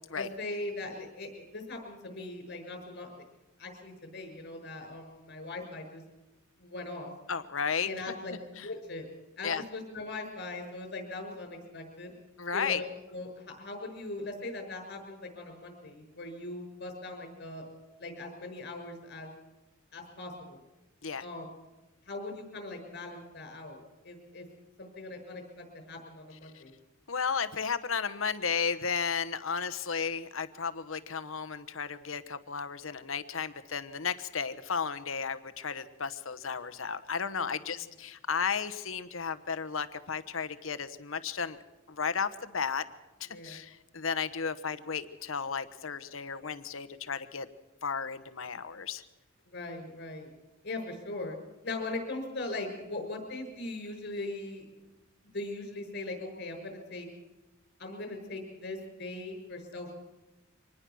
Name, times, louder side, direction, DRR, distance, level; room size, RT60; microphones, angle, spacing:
voice 1, 0.1-3.1 3.6-6.0 6.6-7.1 7.8-8.4 8.6-9.0 9.4-12.2 12.5-17.6 18.0-19.3 19.9-20.6 21.2-21.5 22.1-24.4 24.8-26.7 37.5-37.8 43.3-43.6 49.5-50.3 50.6-51.4 51.6-54.9 55.3-57.1 57.8-60.0, left 2 dB, 55° left, 5 dB, 6.5 m, -40 dB
voice 2, 7.3-7.9 8.6-8.7 9.4-9.6 12.4-12.8 21.0-21.2 26.5-26.6 27.1-41.6 41.9-42.8 43.2-47.5 47.8-49.0, left 6 dB, 70° left, 11 dB, 1.1 m, -34 dB
25.0 x 20.0 x 6.3 m, 1.1 s
head